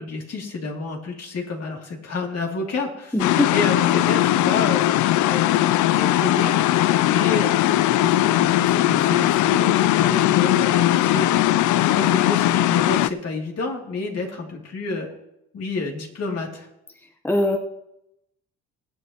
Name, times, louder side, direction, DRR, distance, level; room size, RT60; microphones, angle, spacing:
voice 1, 0.0-3.1 3.4-6.8 7.1-7.5 8.0-11.4 11.9-15.1 15.5-16.7, left 3 dB, 55° left, 0 dB, 2.9 m, -29 dB
voice 2, 3.1-3.5 17.2-17.6, left 1 dB, 5° left, 4 dB, 1.1 m, -21 dB
sound 1, 3.2-13.1, left 14 dB, 75° left, 0.5 m, -19 dB
22.5 x 8.3 x 3.0 m, 0.82 s
cardioid pair, 90°, 30 cm